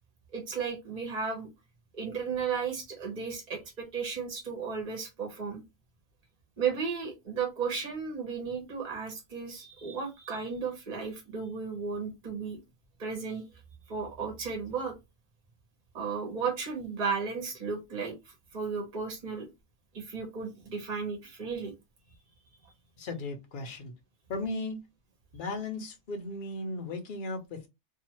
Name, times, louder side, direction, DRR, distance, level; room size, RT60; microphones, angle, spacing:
voice 1, 0.3-1.5 1.9-5.6 6.6-12.6 13.0-13.4 13.9-14.9 15.9-19.5 19.9-21.7, right 5 dB, 40° right, 1.0 m, -34 dB
voice 2, 23.0-23.9 24.3-24.8 25.3-27.7, left 2 dB, 50° left, 0.8 m, -36 dB
2.7 x 2.4 x 2.8 m
omnidirectional pair, 1.3 m